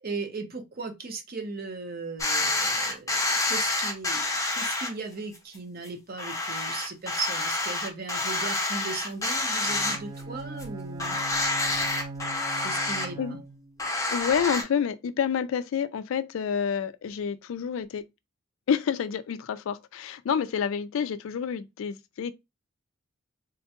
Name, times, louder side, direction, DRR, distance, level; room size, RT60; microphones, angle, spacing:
voice 1, 0.0-4.3 4.5-11.2 12.6-13.4, right 3 dB, 45° right, 0.7 m, -37 dB
sound 1, 2.2-4.9 5.3-5.4 5.8-5.9 6.2-10.3 10.6-10.7 11.0-13.0 13.8-14.6, left 2 dB, 15° left, 0.7 m, -28 dB
Bowed string instrument, 9.6-13.8, right 3 dB, 20° right, 0.3 m, -40 dB
voice 2, 12.7-13.4 14.1-18.0 18.7-22.3, left 7 dB, 70° left, 0.3 m, -29 dB
3.6 x 2.2 x 2.8 m
head